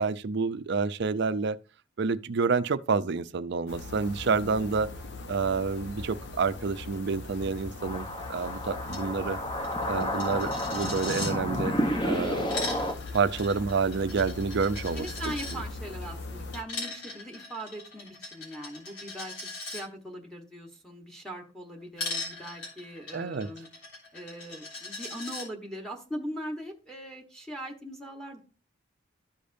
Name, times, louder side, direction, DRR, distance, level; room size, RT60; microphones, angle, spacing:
voice 1, 0.0-1.6 2.0-4.9 5.3-9.4 9.9-11.8 12.0-12.5 13.1-15.1 23.1-23.5, right 4 dB, 60° right, 0.5 m, -28 dB
sound 1, 3.7-16.6, left 2 dB, 60° left, 1.0 m, -41 dB
sound 2, 7.8-12.9, equal, 25° left, 1.0 m, -31 dB
Coin (dropping), 8.9-9.0 9.3-9.4 9.6-11.3 12.2-15.6 16.5-19.8 22.0-25.5, left 3 dB, 80° left, 3.5 m, -39 dB
voice 2, 14.9-23.7 24.1-28.4, equal, 5° left, 1.2 m, -40 dB
13.5 x 5.1 x 2.6 m
head